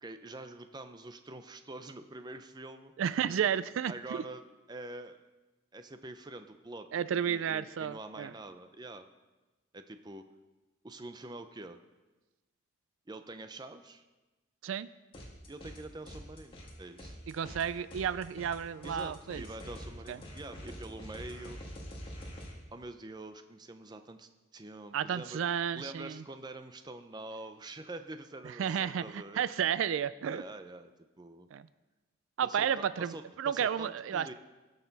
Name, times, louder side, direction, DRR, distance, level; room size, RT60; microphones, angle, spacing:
voice 1, 0.0-2.9 3.9-5.2 5.7-9.1 9.7-10.2 10.8-11.8 13.1-14.0 15.5-17.2 18.8-21.6 22.7-25.4 25.7-29.5 30.3-30.9 31.2-31.5 32.4-34.3, right 2 dB, 20° right, 8 dB, 0.6 m, -46 dB
voice 2, 3.0-4.2 6.9-8.3 14.6-14.9 17.3-19.4 20.1-20.2 24.9-26.2 28.6-30.4 31.5-31.6 32.4-34.3, right 8 dB, 80° right, 16 dB, 0.3 m, -32 dB
sound 1, 15.1-15.8 16.0-22.5, equal, 25° left, 2.0 m, -46 dB
19.5 x 6.6 x 4.0 m, 1.2 s
head